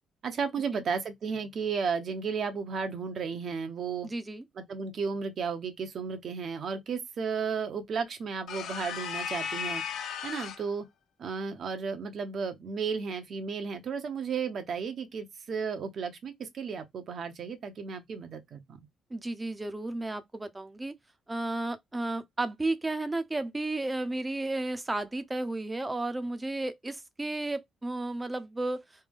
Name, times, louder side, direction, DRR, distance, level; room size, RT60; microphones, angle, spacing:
voice 1, 0.2-4.1 4.6-9.8 10.2-10.8 11.2-18.8, right 5 dB, 60° right, 0.9 m, -34 dB
voice 2, 4.0-4.4 19.1-20.9 21.3-28.8, right 2 dB, 15° right, 0.7 m, -33 dB
sound 1, 8.5-10.7, left 7 dB, 75° left, 0.6 m, -35 dB
3.3 x 2.1 x 3.5 m
cardioid pair, 90°, 0 cm